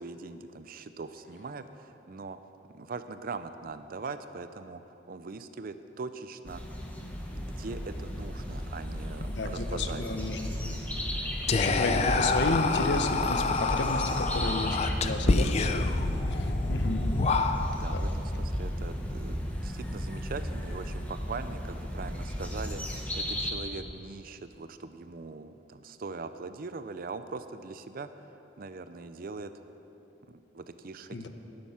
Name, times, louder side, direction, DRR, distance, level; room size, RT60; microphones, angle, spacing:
voice 1, 0.0-2.4 2.7-6.6 7.3-10.2 15.2-15.5 17.7-22.8 23.2-28.1 28.6-29.5 30.3-31.3, right 4 dB, 55° right, 11 dB, 0.5 m, -41 dB
sound 1, 6.5-23.5, equal, 10° left, 1.3 m, -34 dB
voice 2, 9.3-10.8 11.5-15.9 16.3-17.1 17.9-18.0 31.1-31.3, left 2 dB, 70° left, 7 dB, 0.9 m, -32 dB
Whispering, 11.5-17.9, left 3 dB, 35° left, 0.5 m, -28 dB
11.0 x 10.5 x 5.8 m, 2.9 s
head